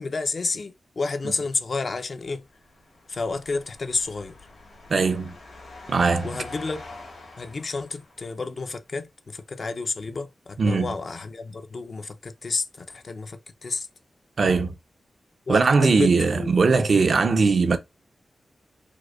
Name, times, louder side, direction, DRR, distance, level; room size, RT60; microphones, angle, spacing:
voice 1, 0.0-2.4 3.1-4.3 6.2-6.8 7.4-13.9 15.5-16.5, left 4 dB, 45° left, 0.4 m, -30 dB
sound 1, 2.3-8.6, left 2 dB, 85° left, 1.6 m, -45 dB
voice 2, 4.9-5.4 5.9-6.4 10.6-11.0 14.4-14.7 15.5-17.8, right 4 dB, 55° right, 0.4 m, -20 dB
4.8 x 2.1 x 2.2 m
wide cardioid pair, 125°, 0 cm